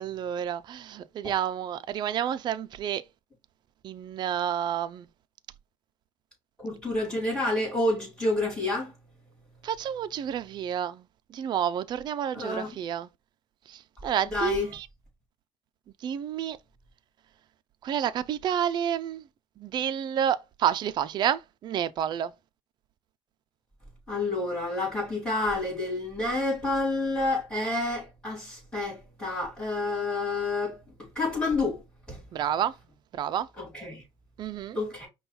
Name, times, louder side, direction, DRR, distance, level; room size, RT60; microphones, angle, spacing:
voice 1, 0.0-3.0 3.8-5.1 9.6-11.0 11.3-13.1 13.7-14.9 16.0-16.6 17.8-19.2 19.6-22.3 32.3-32.7 33.2-33.5 34.4-34.8, right 9 dB, 50° right, 0.5 m, -29 dB
voice 2, 6.6-8.9 12.3-12.7 14.3-14.7 24.1-30.8 31.1-31.8 32.1-32.2 33.6-34.0 34.7-35.1, left 2 dB, 10° left, 3.3 m, -29 dB
5.3 x 2.3 x 4.2 m
cardioid pair, 115°, 10 cm